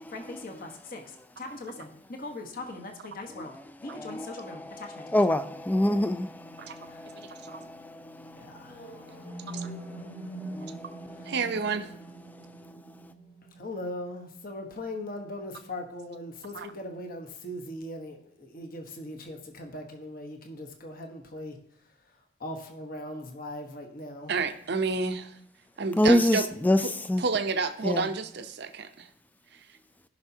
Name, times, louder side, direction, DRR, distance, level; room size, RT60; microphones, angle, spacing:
voice 1, 0.1-1.0 1.4-1.9 2.2-3.5 3.8-5.0 6.9-7.0 8.3-8.9 13.6-21.6 22.4-24.3, left 1 dB, 45° left, 1.1 m, -40 dB
voice 2, 3.9-10.1 10.5-11.3 26.0-26.8 27.1-27.2 27.8-28.1, left 1 dB, 10° left, 0.4 m, -28 dB
voice 3, 7.3-7.6 9.5-9.7 11.3-11.9 16.5-16.7 24.3-25.4 25.8-26.5 26.8-26.9 27.2-29.1 29.5-29.6, right 4 dB, 55° right, 0.7 m, -30 dB
sound 1, 8.6-16.6, right 2 dB, 70° left, 3.4 m, -44 dB
15.0 x 5.8 x 2.8 m
head